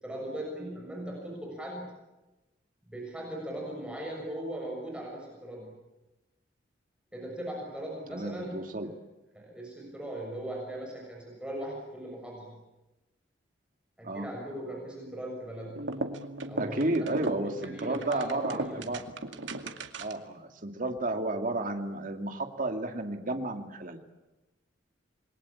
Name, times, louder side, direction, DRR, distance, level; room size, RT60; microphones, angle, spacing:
voice 1, 0.0-1.9 2.9-5.7 7.1-8.6 9.3-12.5 14.0-15.8 16.5-16.8 17.6-18.8, right 1 dB, 5° right, -2 dB, 6.7 m, -39 dB
voice 2, 8.1-8.9 14.0-14.3 16.6-19.0 20.0-24.0, right 2 dB, 45° right, 4 dB, 2.5 m, -32 dB
sound 1, 15.7-20.3, right 2 dB, 80° right, 2.1 m, -37 dB
28.0 x 22.0 x 8.6 m, 1.0 s
head